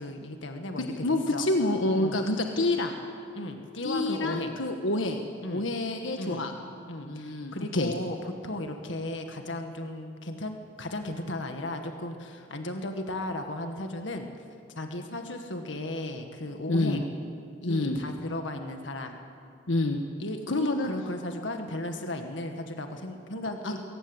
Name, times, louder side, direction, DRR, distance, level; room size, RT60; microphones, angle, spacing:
voice 1, 0.0-1.0 1.3-1.5 1.9-2.2 3.3-4.6 5.4-5.7 6.2-6.5 6.9-14.3 14.8-17.1 17.6-19.2 20.2-23.8, left 1 dB, 70° left, 5 dB, 1.9 m, -35 dB
voice 2, 1.0-3.0 3.8-5.2 5.5-6.5 7.0-7.9 16.7-17.0 17.7-18.0 19.7-20.0 20.5-20.9 23.6-23.7, left 2 dB, 85° left, 4 dB, 1.4 m, -27 dB
22.5 x 18.5 x 8.1 m, 2.3 s
head